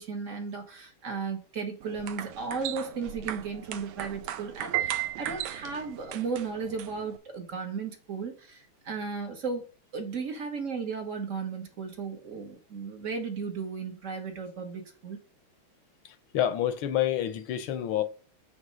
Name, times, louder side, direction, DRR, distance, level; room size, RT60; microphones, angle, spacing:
voice 1, 0.0-9.6 9.9-15.2, right 5 dB, 45° right, 1.4 m, -35 dB
sound 1, 1.8-7.2, right 11 dB, 80° right, 1.3 m, -40 dB
Piano, 4.7-6.0, right 14 dB, 60° right, 1.1 m, -32 dB
voice 2, 16.3-18.0, left 11 dB, 80° left, 1.6 m, -27 dB
7.3 x 3.5 x 5.1 m
omnidirectional pair, 2.2 m